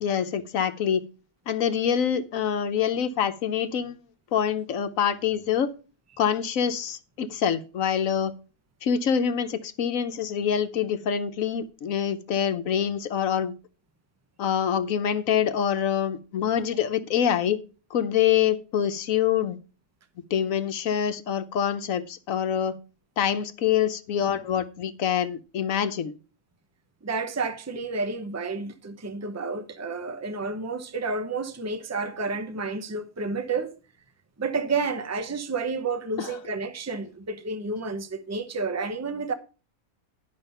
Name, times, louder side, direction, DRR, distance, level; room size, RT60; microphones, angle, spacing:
voice 1, 0.0-1.0 1.5-4.0 4.3-5.7 6.2-8.3 8.8-13.5 14.4-17.6 17.9-19.6 20.3-22.7 23.2-26.1 36.2-36.4, left 8 dB, 75° left, 1.2 m, -25 dB
voice 2, 27.0-33.7 34.4-39.3, right 4 dB, 15° right, 0.7 m, -30 dB
11.0 x 5.7 x 5.5 m
omnidirectional pair, 1.4 m